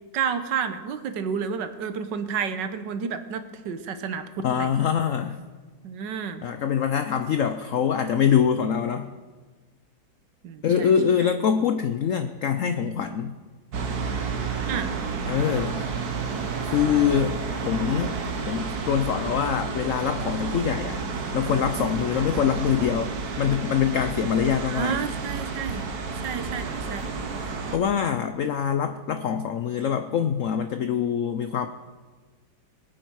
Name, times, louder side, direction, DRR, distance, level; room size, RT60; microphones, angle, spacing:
voice 1, 0.1-4.7 5.8-6.4 10.4-10.9 11.2-11.3 14.7-14.9 24.7-25.9 26.2-27.1, right 7 dB, 80° right, 9 dB, 1.6 m, -30 dB
voice 2, 4.4-5.4 6.4-9.1 10.6-13.3 15.2-15.8 16.6-17.4 17.7-18.2 18.5-25.0 27.4-31.7, left 8 dB, 65° left, 9 dB, 0.8 m, -24 dB
sound 1, 13.7-27.8, right 4 dB, 65° right, 1.6 m, -31 dB
21.5 x 9.1 x 4.7 m, 1.4 s
omnidirectional pair, 1.9 m